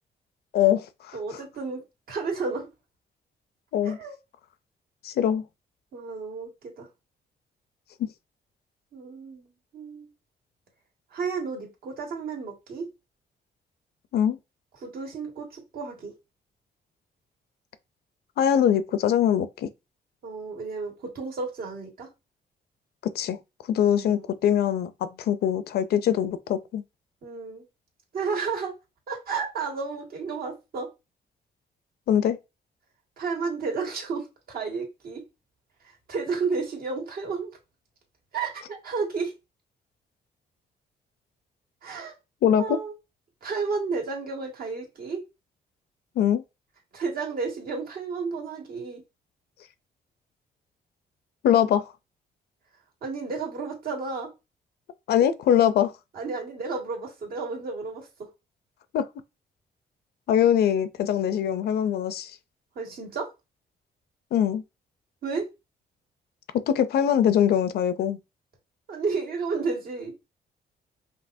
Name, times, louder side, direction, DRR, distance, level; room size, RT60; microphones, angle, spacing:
voice 1, 0.5-1.2 3.7-4.0 5.0-5.4 8.0-8.1 14.1-14.4 18.4-19.7 23.2-23.4 23.7-26.8 32.1-32.4 42.4-42.8 46.2-46.4 51.4-51.8 55.1-55.9 58.9-59.1 60.3-62.3 64.3-64.6 66.5-68.2, left 9 dB, 75° left, 0.5 m, -22 dB
voice 2, 1.1-2.7 3.8-4.2 5.9-6.9 8.9-10.1 11.1-12.9 14.8-16.1 20.2-22.1 23.9-24.2 27.2-27.6 28.1-28.7 29.1-30.9 33.2-35.2 36.1-37.5 38.3-39.3 41.8-42.1 42.6-42.9 43.4-45.2 46.9-49.0 53.0-54.3 56.1-58.1 62.8-63.3 65.2-65.5 68.9-70.1, right 4 dB, 65° right, 1.8 m, -32 dB
5.3 x 2.8 x 2.6 m
cardioid pair, 135°, 17 cm